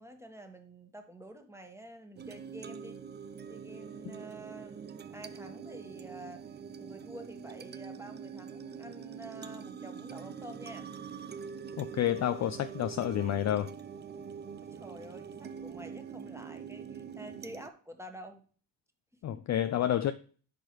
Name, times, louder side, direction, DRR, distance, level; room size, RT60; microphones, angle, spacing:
voice 1, 0.0-3.0 3.5-6.4 6.8-10.9 14.6-18.5 19.3-19.6, right 1 dB, 5° right, 1.4 m, -48 dB
sound 1, 2.2-17.7, right 6 dB, 25° right, 0.4 m, -44 dB
voice 2, 11.8-13.7 19.2-20.1, left 11 dB, 40° left, 0.4 m, -29 dB
10.0 x 4.6 x 3.1 m
supercardioid pair, 60°, 45 cm